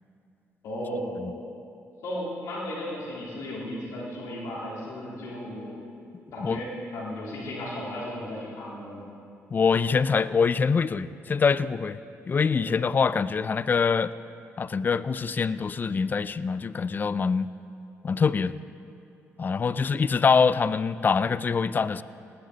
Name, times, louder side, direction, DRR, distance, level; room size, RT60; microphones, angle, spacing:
voice 1, 0.6-1.1 2.0-5.7 6.3-9.0, left 1 dB, 80° left, -5 dB, 3.6 m, -35 dB
voice 2, 9.5-12.0 12.3-14.1 14.6-17.5 18.0-18.6 19.4-22.0, left 5 dB, 35° left, 16 dB, 0.4 m, -24 dB
18.0 x 11.5 x 4.0 m, 2.5 s
cardioid pair, 90°, 5 cm